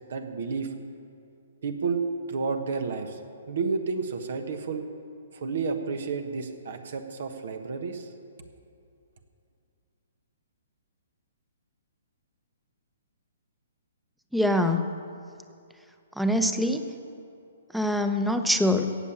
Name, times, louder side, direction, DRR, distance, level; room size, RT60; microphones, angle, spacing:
voice 1, 0.1-0.7 1.6-3.2 3.5-4.9 5.3-8.1, right 4 dB, 65° right, 6 dB, 1.3 m, -31 dB
voice 2, 14.3-14.8 16.2-16.8 17.7-18.9, left 1 dB, ahead, 7 dB, 0.9 m, -24 dB
17.0 x 7.2 x 7.3 m, 2.5 s
hypercardioid pair, 130°, 0 cm